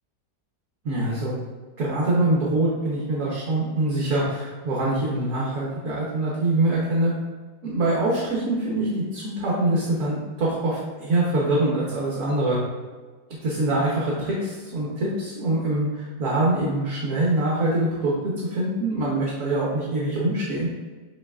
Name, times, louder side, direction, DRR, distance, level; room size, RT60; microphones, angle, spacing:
voice 1, 0.8-1.3 1.8-7.1 7.6-12.6 13.4-20.7, right 2 dB, 60° right, -5 dB, 1.2 m, -24 dB
6.4 x 2.8 x 2.3 m, 1.4 s
omnidirectional pair, 1.7 m